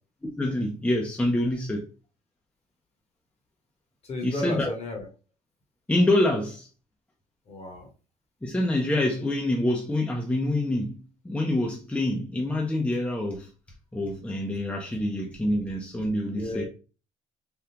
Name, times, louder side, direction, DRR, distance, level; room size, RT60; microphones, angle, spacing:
voice 1, 0.4-1.9 4.2-4.7 5.9-6.7 8.4-11.0 11.2-13.5 13.9-16.6, left 1 dB, 10° left, 0.6 m, -26 dB
voice 2, 4.0-5.1 7.5-7.9 16.3-16.7, left 2 dB, 40° left, 1.1 m, -33 dB
3.5 x 2.3 x 2.8 m
cardioid pair, 110°, 17 cm